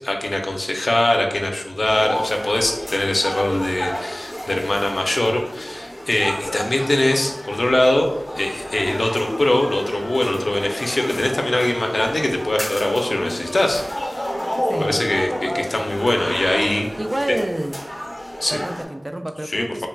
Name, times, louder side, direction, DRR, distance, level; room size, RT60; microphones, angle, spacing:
voice 1, 0.0-8.1 8.3-14.3 14.7-16.9 18.4-18.6 19.5-19.9, left 1 dB, 60° left, 3 dB, 0.5 m, -22 dB
sound 1, 1.9-18.8, equal, 10° left, 0.9 m, -30 dB
voice 2, 17.0-17.8 18.5-19.9, right 1 dB, 25° right, 7 dB, 0.3 m, -27 dB
4.4 x 3.2 x 2.3 m, 0.93 s
wide cardioid pair, 60°, 0 cm